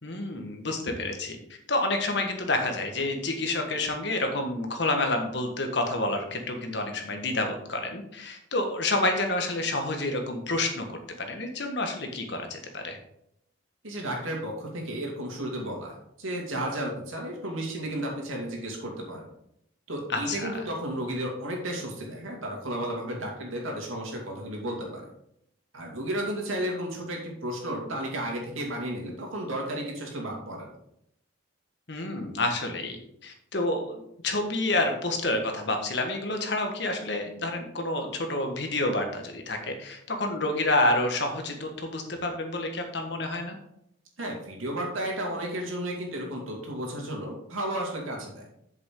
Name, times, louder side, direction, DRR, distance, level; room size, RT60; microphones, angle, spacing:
voice 1, 0.0-1.4 1.7-13.0 20.1-20.6 31.9-43.5, left 2 dB, 60° left, 4 dB, 1.5 m, -29 dB
voice 2, 13.8-19.2 19.9-25.1 25.7-30.7 44.2-48.5, right 1 dB, 90° right, 0 dB, 2.6 m, -33 dB
8.3 x 6.9 x 3.8 m, 0.76 s
head